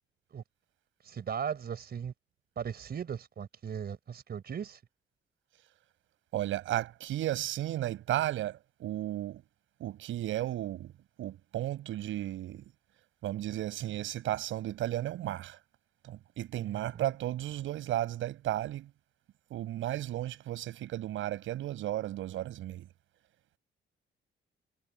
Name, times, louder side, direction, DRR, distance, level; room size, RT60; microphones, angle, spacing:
voice 1, 1.0-2.1 2.6-4.8 16.6-17.1, right 7 dB, 55° right, 4.9 m, -38 dB
voice 2, 6.3-9.4 9.8-10.9 11.2-12.6 13.2-15.6 16.1-18.9 19.5-22.9, right 13 dB, 85° right, 6.2 m, -34 dB
cardioid pair, 90°, 20 cm